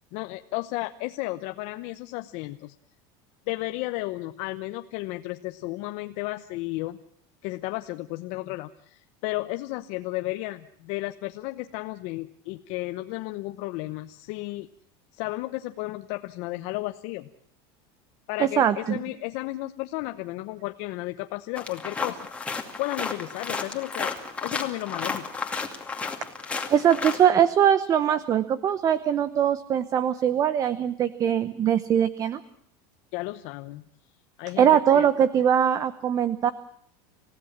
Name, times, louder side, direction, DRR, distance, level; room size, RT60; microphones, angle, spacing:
voice 1, 0.1-2.7 3.5-7.0 7.4-14.7 15.1-17.3 18.3-22.2 22.8-24.1 24.4-25.3 33.1-33.8 34.4-35.1, left 19 dB, 55° left, 8 dB, 0.9 m, -33 dB
voice 2, 18.4-19.0 26.7-32.4 34.6-36.5, right 9 dB, 30° right, 15 dB, 0.9 m, -22 dB
sound 1, 21.6-27.2, left 4 dB, 10° left, 2.5 m, -33 dB
28.5 x 16.0 x 7.3 m, 0.66 s
supercardioid pair, 155°, 12 cm